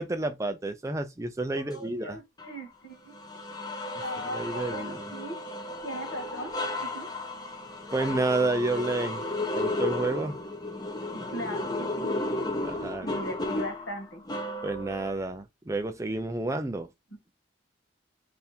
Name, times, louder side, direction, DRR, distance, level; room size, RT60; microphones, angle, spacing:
voice 1, 0.0-2.2 4.2-5.0 7.9-9.2 9.5-10.3 12.6-13.2 14.6-16.9, right 2 dB, 15° right, 0.4 m, -30 dB
voice 2, 1.5-3.1 4.0-5.4 5.8-7.1 11.1-12.2 13.0-14.2 17.1-17.2, equal, 85° left, 1.7 m, -39 dB
sound 1, 2.4-2.5 3.1-15.1, left 2 dB, 20° left, 0.7 m, -34 dB
3.4 x 2.6 x 4.3 m
head